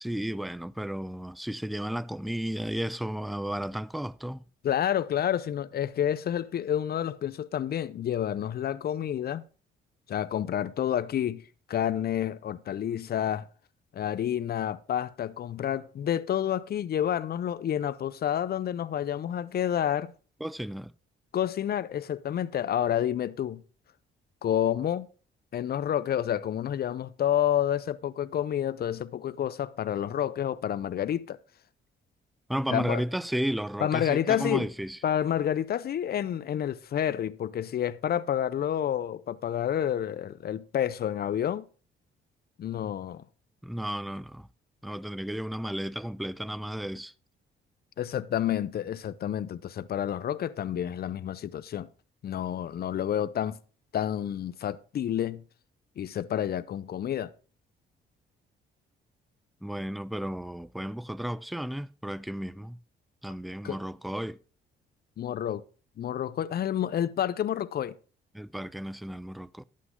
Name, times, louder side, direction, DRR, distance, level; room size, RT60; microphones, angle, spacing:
voice 1, 0.0-4.4 20.4-20.9 32.5-35.0 43.6-44.5 44.8-47.1 59.6-62.8 63.2-64.4 68.3-69.6, equal, ahead, 0.4 m, -33 dB
voice 2, 4.6-9.4 10.1-11.4 11.7-13.5 13.9-20.1 21.3-23.6 24.4-25.1 25.5-31.4 32.7-33.0 33.8-34.7 35.0-41.7 42.6-43.2 48.0-51.9 52.2-53.6 53.9-55.4 56.0-57.3 63.6-63.8 65.2-65.6 66.0-67.9, left 10 dB, 50° left, 0.6 m, -29 dB
11.0 x 8.5 x 3.7 m
cardioid pair, 90°, 20 cm